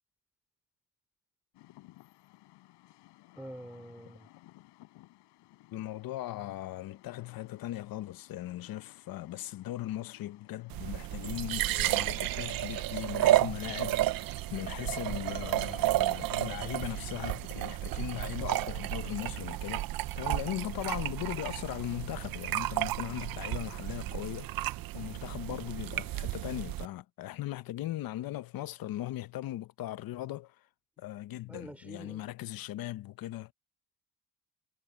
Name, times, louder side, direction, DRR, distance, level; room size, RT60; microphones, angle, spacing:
Rain, 1.5-20.2, left 19 dB, 90° left, 3.9 m, -60 dB
voice 1, 3.4-4.3 31.5-32.3, right 1 dB, 5° right, 3.5 m, -46 dB
voice 2, 5.7-19.9 20.1-30.5 31.0-33.5, left 14 dB, 60° left, 1.0 m, -39 dB
sound 1, 10.7-26.9, right 14 dB, 60° right, 0.8 m, -32 dB
cardioid pair, 125°, 40 cm